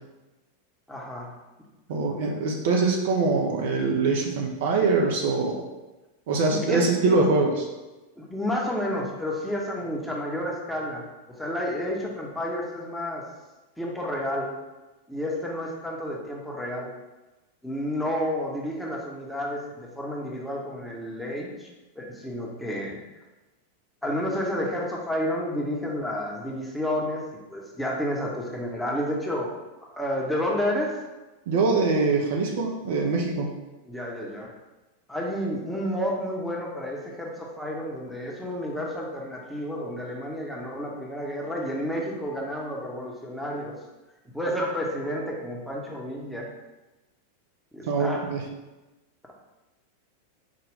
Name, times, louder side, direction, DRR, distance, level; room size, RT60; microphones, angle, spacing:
voice 1, 0.9-1.3 6.5-7.2 8.2-11.1 11.4-13.2 13.8-14.5 15.1-16.9 17.6-21.7 22.0-23.0 24.0-29.6 29.9-30.9 33.9-34.5 35.1-43.7 44.3-46.5 47.7-48.3, equal, 5° left, -3 dB, 0.8 m, -30 dB
voice 2, 1.9-5.6 6.3-7.7 31.5-33.5 47.9-48.4, right 3 dB, 55° right, 1 dB, 0.5 m, -23 dB
5.0 x 2.2 x 3.5 m, 1.1 s
figure-of-eight pair, 90°, 0 cm